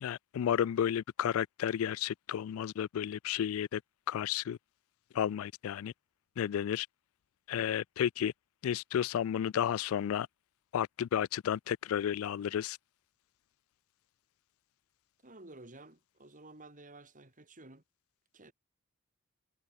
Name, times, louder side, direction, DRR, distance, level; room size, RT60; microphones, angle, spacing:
voice 1, 0.0-3.8 4.1-4.6 5.1-5.9 6.4-6.9 7.5-8.3 8.6-10.3 10.7-12.8, left 9 dB, 70° left, 0.3 m, -32 dB
voice 2, 15.2-17.8 18.3-18.5, right 2 dB, 40° right, 4.3 m, -53 dB
head